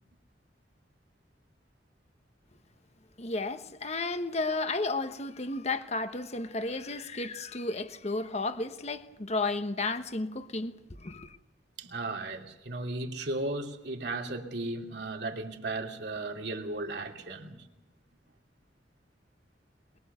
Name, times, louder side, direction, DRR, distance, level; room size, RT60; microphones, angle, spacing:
voice 1, 3.2-10.7 11.0-11.4, left 3 dB, 40° left, 1.2 m, -33 dB
voice 2, 11.8-17.7, right 2 dB, 65° right, 3.0 m, -35 dB
22.5 x 22.5 x 6.9 m
head